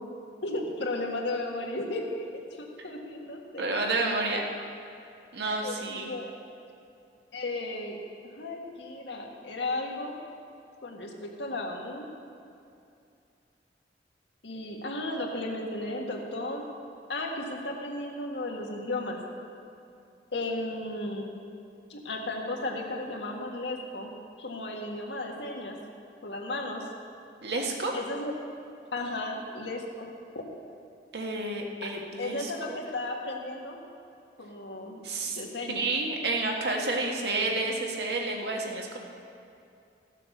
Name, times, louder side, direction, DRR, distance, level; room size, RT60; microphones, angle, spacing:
voice 1, 0.4-2.2 2.5-3.9 5.4-6.3 7.3-8.0 8.3-10.2 10.8-12.1 14.4-16.6 17.1-19.2 20.3-21.3 21.9-24.1 24.4-25.8 26.2-26.8 27.9-28.3 28.9-30.1 30.3-30.4 31.8-31.9 32.2-33.8 34.4-35.0 35.2-35.9, left 2 dB, 85° left, 0 dB, 1.7 m, -34 dB
voice 2, 3.6-4.4 5.3-6.1 27.4-27.9 31.1-32.8 35.0-35.4 35.7-39.0, right 2 dB, 75° right, 0 dB, 1.6 m, -30 dB
14.5 x 7.5 x 6.6 m, 2.6 s
head